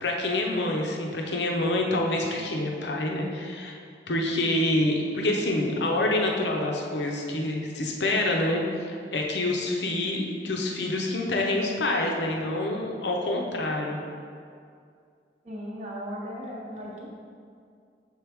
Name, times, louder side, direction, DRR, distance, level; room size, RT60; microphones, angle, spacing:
voice 1, 0.0-3.8 4.1-14.0, left 1 dB, 80° left, 0 dB, 0.7 m, -27 dB
voice 2, 15.4-17.2, equal, 40° right, -5 dB, 0.6 m, -37 dB
6.5 x 4.6 x 3.4 m, 2.3 s
head